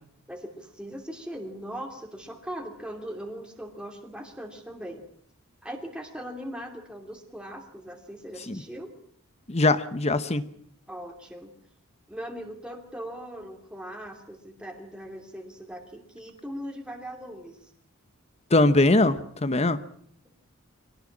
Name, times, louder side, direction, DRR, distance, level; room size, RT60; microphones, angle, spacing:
voice 1, 0.3-5.0 5.6-8.9 10.9-11.5 12.1-17.7, equal, 5° right, 2 dB, 2.8 m, -39 dB
voice 2, 9.5-10.4 18.5-19.8, left 2 dB, 30° left, 13 dB, 1.0 m, -21 dB
24.5 x 18.0 x 8.8 m, 0.65 s
head